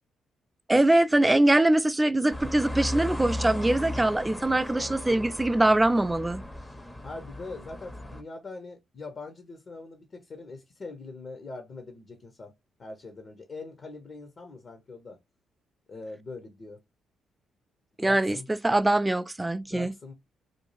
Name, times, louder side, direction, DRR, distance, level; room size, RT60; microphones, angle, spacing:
voice 1, 0.7-6.4 18.0-19.9, right 1 dB, 15° right, 0.3 m, -23 dB
sound 1, 2.3-8.2, left 1 dB, 10° left, 0.7 m, -36 dB
voice 2, 4.4-5.3 7.0-15.2 15.9-16.8 18.0-18.4 19.7-20.1, left 3 dB, 45° left, 0.8 m, -42 dB
2.6 x 2.3 x 3.1 m
hypercardioid pair, 50°, 0 cm